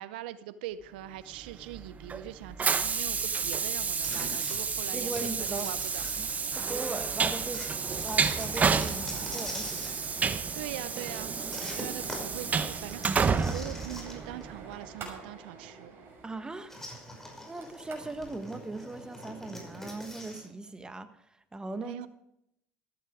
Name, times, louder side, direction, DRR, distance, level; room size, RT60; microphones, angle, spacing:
voice 1, 0.0-6.0 10.5-11.3 11.6-16.0 21.8-22.1, right 12 dB, 85° right, 15 dB, 0.6 m, -42 dB
Train, 1.5-14.6, right 5 dB, 30° right, 1.0 m, -30 dB
sound 1, 4.0-6.7 7.5-10.0 11.5-14.5 14.7-14.8 16.7-20.5, equal, 5° left, 5.6 m, -44 dB
sound 2, 4.1-4.3 4.6-4.7 5.0-5.2 5.6-18.3, right 4 dB, 50° right, 6.3 m, -48 dB
voice 2, 4.9-5.7 6.5-7.6 8.0-9.9 16.2-16.8 17.5-21.2 21.5-21.9, right 2 dB, 15° right, 10 dB, 1.3 m, -39 dB
14.0 x 12.5 x 4.9 m, 0.78 s
supercardioid pair, 85°, 5 cm